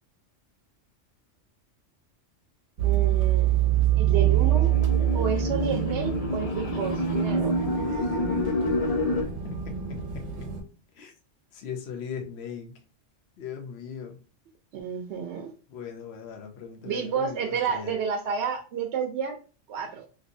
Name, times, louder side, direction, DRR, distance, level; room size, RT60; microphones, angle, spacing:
voice 1, 2.8-3.6 4.0-4.7 5.1-7.6 14.7-15.5 16.8-19.4 19.7-20.0, right 7 dB, 70° right, 3 dB, 0.8 m, -30 dB
sound 1, 2.8-10.6, right 11 dB, 90° right, 1.2 m, -25 dB
sound 2, 4.1-9.2, left 1 dB, 45° left, 0.5 m, -29 dB
voice 2, 7.9-10.2 11.0-11.1 11.5-12.7 13.4-14.2 15.7-17.9, left 6 dB, 60° left, 3 dB, 0.9 m, -39 dB
3.2 x 2.6 x 2.6 m, 0.36 s
omnidirectional pair, 1.3 m